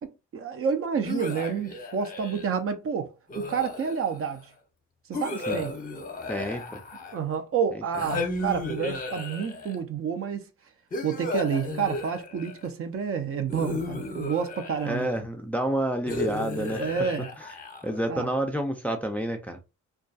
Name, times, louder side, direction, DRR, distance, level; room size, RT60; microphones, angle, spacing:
voice 1, 0.0-4.5 5.1-5.7 7.1-10.5 11.0-15.1 16.8-17.3 18.1-18.3, right 6 dB, 50° right, 0.5 m, -29 dB
sound 1, 1.0-2.6 3.3-4.2 5.1-7.3 7.9-9.8 10.9-12.7 13.5-15.1 16.1-18.0, left 2 dB, 30° left, 0.7 m, -34 dB
voice 2, 6.3-6.8 14.8-16.8 17.8-19.6, right 1 dB, 5° left, 0.4 m, -29 dB
2.3 x 2.2 x 2.5 m
cardioid pair, 90°, 30 cm